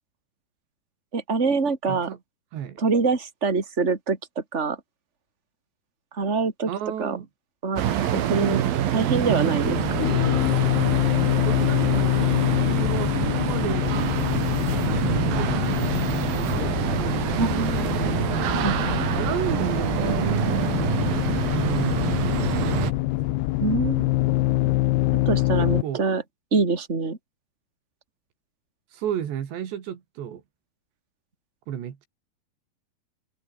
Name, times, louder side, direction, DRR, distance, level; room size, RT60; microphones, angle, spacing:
voice 1, 1.1-2.1 2.8-4.8 6.1-6.7 7.0-7.2 7.6-7.8 8.1-8.6 8.9-9.8 17.4-18.0 18.6-19.0 23.6-24.1 25.3-26.2 26.5-27.2, right 4 dB, 15° right, 3.5 m, -25 dB
voice 2, 1.9-2.2 2.5-2.8 6.7-7.3 11.4-14.0 14.9-15.8 16.3-17.7 19.1-21.0 21.5-23.4 25.6-26.0 28.9-30.4 31.7-32.1, right 10 dB, 90° right, 4.8 m, -33 dB
sound 1, 7.8-22.9, right 10 dB, 60° right, 3.5 m, -26 dB
sound 2, 9.6-25.8, left 18 dB, 75° left, 2.7 m, -25 dB
omnidirectional pair, 4.9 m